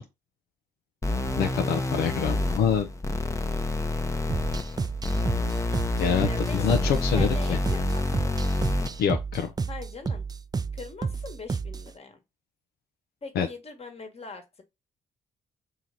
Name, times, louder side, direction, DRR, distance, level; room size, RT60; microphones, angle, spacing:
sound 1, 1.0-9.0, left 2 dB, 20° left, 0.7 m, -28 dB
voice 1, 1.4-2.9 6.0-7.6 9.0-9.5 13.4-13.5, left 8 dB, 75° left, 0.4 m, -26 dB
sound 2, 4.3-11.9, right 5 dB, 25° right, 0.4 m, -32 dB
voice 2, 6.2-8.3 9.7-10.3 10.7-12.2 13.2-14.6, left 4 dB, 40° left, 1.3 m, -42 dB
3.1 x 2.8 x 3.7 m
supercardioid pair, 50°, 16 cm